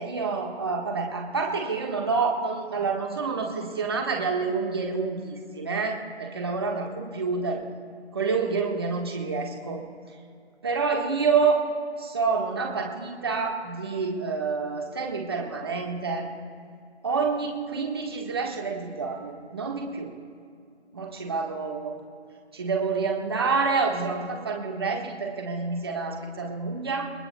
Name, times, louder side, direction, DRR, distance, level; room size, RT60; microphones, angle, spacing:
voice 1, 0.0-7.6 8.1-9.8 10.6-11.6 12.0-16.3 17.0-20.1 20.9-22.0 22.5-27.1, right 4 dB, 20° right, 2 dB, 1.5 m, -28 dB
29.5 x 17.5 x 2.3 m, 2.3 s
figure-of-eight pair, 175°, 34 cm